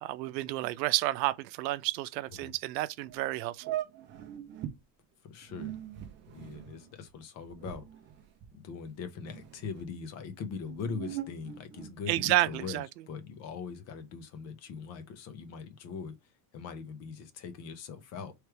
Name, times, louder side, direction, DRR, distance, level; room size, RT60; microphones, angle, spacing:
voice 1, 0.0-3.7 12.1-12.9, right 17 dB, 90° right, 0.6 m, -30 dB
sound 1, 3.0-3.2 3.6-4.8 5.4-8.9 9.2-9.9 10.5-12.5, right 12 dB, 25° right, 0.4 m, -41 dB
voice 2, 5.2-5.7 6.3-7.8 8.5-18.3, left 5 dB, 35° left, 0.8 m, -41 dB
3.3 x 3.2 x 4.5 m
supercardioid pair, 155°, 49 cm